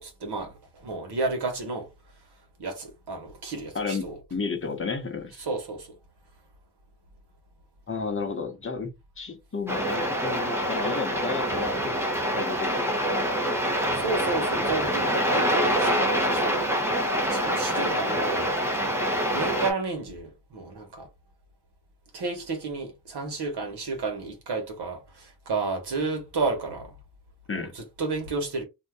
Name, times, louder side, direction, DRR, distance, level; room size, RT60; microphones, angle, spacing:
voice 1, 0.0-1.9 2.6-4.2 5.4-5.9 13.9-16.8 17.2-18.5 19.3-21.1 22.1-27.0 27.5-28.6, right 3 dB, 80° right, 1.1 m, -32 dB
voice 2, 3.7-5.5 7.9-8.9 9.2-11.9 12.3-13.2 27.5-27.7, left 5 dB, 35° left, 0.7 m, -32 dB
sound 1, 9.7-19.7, equal, 5° right, 0.7 m, -26 dB
2.6 x 2.2 x 3.3 m
wide cardioid pair, 155°, 39 cm